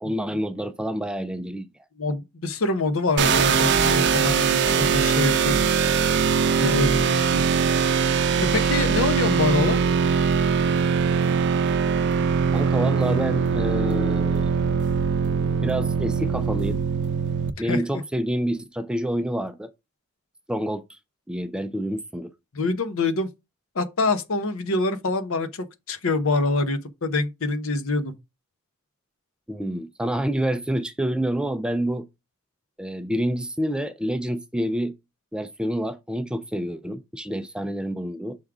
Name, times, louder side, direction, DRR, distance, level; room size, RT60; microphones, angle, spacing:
voice 1, 0.0-1.7 12.5-14.5 15.6-16.8 17.6-19.7 20.5-21.0 21.3-22.3 29.5-32.1 32.8-35.0 35.3-38.4, right 1 dB, 5° right, 0.3 m, -28 dB
voice 2, 2.0-5.7 6.6-7.4 8.5-9.8 17.6-17.8 22.5-23.3 23.7-28.1, left 2 dB, 65° left, 0.8 m, -25 dB
sound 1, 3.2-17.5, right 6 dB, 50° right, 0.6 m, -21 dB
6.3 x 3.6 x 4.7 m
head